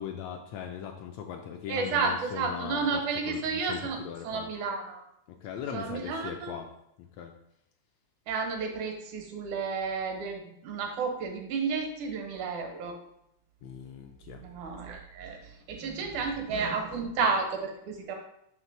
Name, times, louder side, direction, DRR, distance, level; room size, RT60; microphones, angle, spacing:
voice 1, 0.0-4.5 5.3-6.7 7.0-7.3 13.6-14.4, left 8 dB, 80° left, 3 dB, 1.6 m, -40 dB
voice 2, 1.7-4.0 4.2-5.0 5.7-6.6 8.3-13.0 14.4-18.2, right 4 dB, 80° right, 3 dB, 2.5 m, -32 dB
5.9 x 3.3 x 5.8 m, 0.76 s
omnidirectional pair, 3.4 m